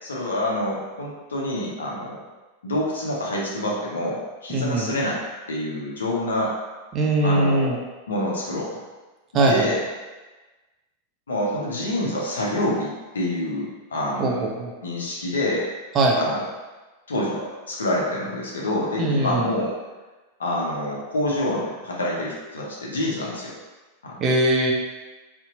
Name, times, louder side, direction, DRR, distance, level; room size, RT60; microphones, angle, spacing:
voice 1, 0.0-2.2 2.6-5.2 5.5-6.6 7.2-7.8 8.1-8.8 9.3-9.8 11.3-14.5 14.8-15.7 16.1-16.5 17.1-19.8 20.4-23.6 24.0-24.1, left 1 dB, 70° left, -3 dB, 0.6 m, -27 dB
voice 2, 4.5-4.9 6.9-7.7 9.3-9.7 14.2-14.8 15.9-16.2 19.0-19.5 24.2-24.7, right 2 dB, 30° right, 0 dB, 0.4 m, -21 dB
2.6 x 2.1 x 2.7 m, 1.2 s
figure-of-eight pair, 90°, 0 cm